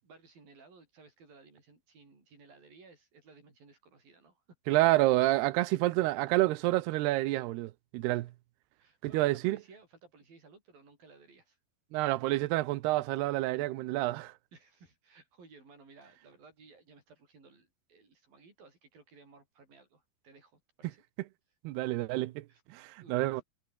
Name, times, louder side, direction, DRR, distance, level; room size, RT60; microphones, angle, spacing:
voice 1, 0.0-4.4 8.1-8.3 8.8-11.6 14.5-21.0 22.5-22.6 23.0-23.4, right 4 dB, 60° right, 9.9 m, -58 dB
voice 2, 4.7-8.3 9.0-9.6 11.9-14.3 21.6-22.5 22.7-23.4, right 18 dB, 90° right, 2.9 m, -28 dB
omnidirectional pair, 4.6 m